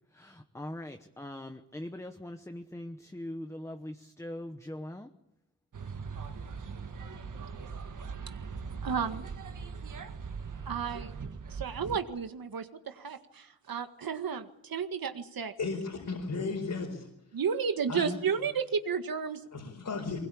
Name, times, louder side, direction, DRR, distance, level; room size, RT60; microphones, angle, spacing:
voice 1, 0.1-5.1, left 1 dB, 10° left, 6 dB, 1.0 m, -41 dB
sound 1, 5.7-12.0, right 5 dB, 60° right, 1.7 m, -40 dB
voice 2, 8.8-9.3 10.7-11.1 11.6-15.5 17.3-19.4, right 6 dB, 85° right, 7 dB, 2.0 m, -32 dB
voice 3, 15.6-17.1 17.9-18.2 19.5-20.2, left 4 dB, 65° left, 1 dB, 4.8 m, -34 dB
24.0 x 21.0 x 8.6 m, 0.85 s
wide cardioid pair, 165°, 34 cm